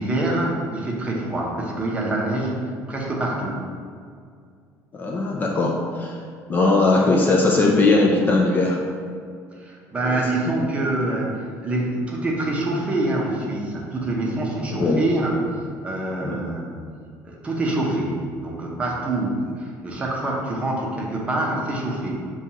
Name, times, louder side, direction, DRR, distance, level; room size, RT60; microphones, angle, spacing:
voice 1, 0.0-3.6 9.6-15.4 15.8-16.8 17.2-22.1, right 2 dB, 20° right, -2 dB, 0.7 m, -25 dB
voice 2, 4.9-6.1 6.5-8.8 10.0-10.2 14.7-15.0 16.2-16.4, left 3 dB, 25° left, -1 dB, 0.3 m, -19 dB
6.8 x 2.3 x 2.8 m, 2.2 s
cardioid pair, 145°, 7 cm